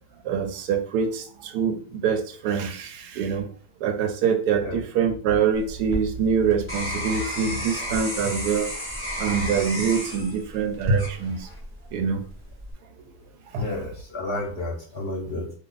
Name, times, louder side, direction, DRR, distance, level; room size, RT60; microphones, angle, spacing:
voice 1, 0.2-3.5 3.8-8.7 9.2-11.5 11.9-12.2 13.1-13.2 13.5-13.6, right 6 dB, 85° right, 7 dB, 1.1 m, -25 dB
sound 1, 5.5-11.7 12.3-12.7, equal, 10° left, 0.8 m, -33 dB
voice 2, 13.6-15.5, left 2 dB, 50° left, -1 dB, 0.8 m, -31 dB
2.6 x 2.3 x 3.8 m, 0.44 s
omnidirectional pair, 1.6 m